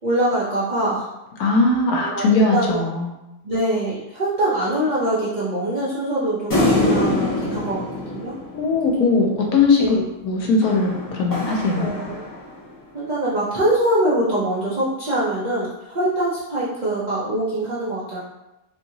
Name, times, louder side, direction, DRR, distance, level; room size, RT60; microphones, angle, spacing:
voice 1, 0.0-1.1 1.9-2.8 3.4-8.3 9.8-10.0 11.8-12.2 12.9-18.2, right 1 dB, 90° right, -8 dB, 0.4 m, -23 dB
voice 2, 1.4-3.1 8.5-10.0 10.2-11.9, left 3 dB, 70° left, 0 dB, 1.1 m, -19 dB
sound 1, 6.5-9.2 10.6-12.7, left 2 dB, 30° left, 0.4 m, -24 dB
2.9 x 2.7 x 2.7 m, 0.95 s
omnidirectional pair, 1.7 m